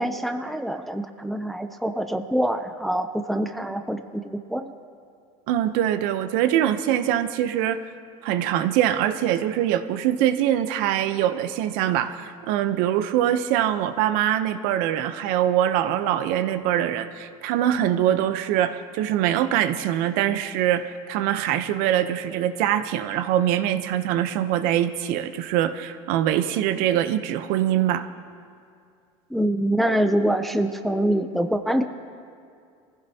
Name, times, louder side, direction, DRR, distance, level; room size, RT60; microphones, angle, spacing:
voice 1, 0.0-4.7 29.3-31.8, right 1 dB, ahead, 7 dB, 0.5 m, -25 dB
voice 2, 5.5-7.8 8.2-28.1, right 11 dB, 65° right, 10 dB, 0.7 m, -23 dB
23.5 x 15.5 x 2.8 m, 2.3 s
cardioid pair, 140°, 16 cm